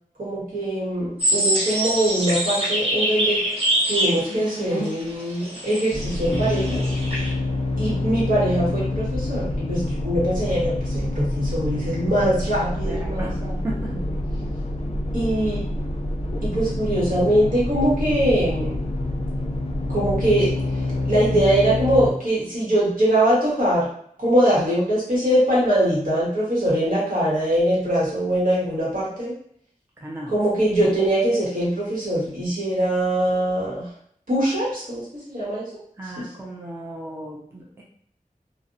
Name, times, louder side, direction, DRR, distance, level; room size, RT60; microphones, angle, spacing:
voice 1, 0.2-3.4 3.9-6.9 7.8-13.5 15.1-15.6 16.4-18.7 19.9-20.5 21.0-23.9 24.2-29.3 30.3-33.9 34.3-35.7 36.2-36.3, right 1 dB, 70° right, -7 dB, 1.1 m, -22 dB
sound 1, 1.2-7.3, right 1 dB, 40° right, 0.9 m, -25 dB
sound 2, 5.9-22.1, left 1 dB, 45° left, 0.4 m, -27 dB
voice 2, 12.9-13.9 30.0-30.3 36.0-37.8, right 1 dB, 15° right, -3 dB, 0.5 m, -35 dB
2.5 x 2.0 x 2.6 m, 0.65 s
wide cardioid pair, 60°, 15 cm